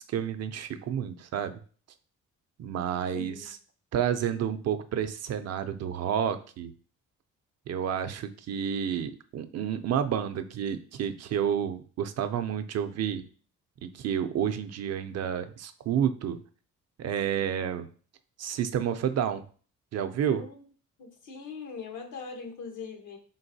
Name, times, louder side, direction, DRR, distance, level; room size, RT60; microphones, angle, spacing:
voice 1, 0.1-1.6 2.6-3.6 3.9-6.7 7.7-13.2 13.8-16.4 17.0-17.9 18.4-19.4 19.9-20.4, right 9 dB, 55° right, 9 dB, 0.5 m, -30 dB
voice 2, 3.1-3.5 20.3-20.6 21.0-23.2, left 5 dB, 80° left, 3 dB, 1.1 m, -41 dB
4.2 x 3.8 x 2.7 m, 0.41 s
cardioid pair, 90°, 30 cm